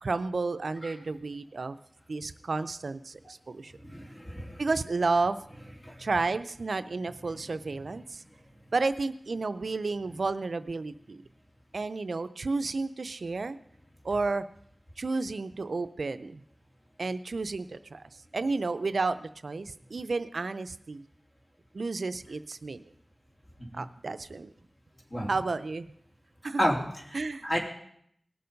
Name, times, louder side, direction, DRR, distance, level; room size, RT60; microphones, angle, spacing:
voice 1, 0.0-1.8 2.1-3.7 4.6-5.4 6.0-8.2 8.7-11.2 11.7-13.6 14.0-14.5 15.0-16.4 17.0-18.0 18.3-21.0 21.7-22.8 23.7-24.5 25.3-25.9 26.4-26.6 27.1-27.5, right 3 dB, 75° right, 12 dB, 0.5 m, -31 dB
voice 2, 3.8-4.6 5.8-6.1 7.4-7.6 23.7-23.8 25.1-25.3 26.6-27.6, equal, 25° left, 0 dB, 2.8 m, -32 dB
18.5 x 6.9 x 5.2 m, 0.69 s
wide cardioid pair, 60°, 0 cm